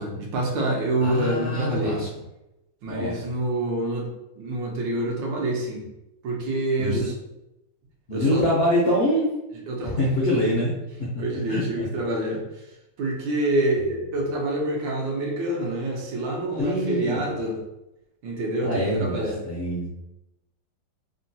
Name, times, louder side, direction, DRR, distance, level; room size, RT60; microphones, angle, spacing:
voice 1, 0.0-2.0 2.8-4.1 4.4-5.9 6.2-7.0 8.1-8.4 9.7-10.1 11.2-12.6 13.0-17.6 18.2-19.4, right 1 dB, 80° right, -1 dB, 1.4 m, -27 dB
voice 2, 1.0-2.1 2.9-3.1 6.8-7.1 8.1-9.3 9.8-10.7 11.0-11.2 11.5-11.8 16.6-17.3 18.6-19.9, equal, 70° left, -6 dB, 0.5 m, -24 dB
3.5 x 2.2 x 2.6 m, 0.90 s
omnidirectional pair, 2.0 m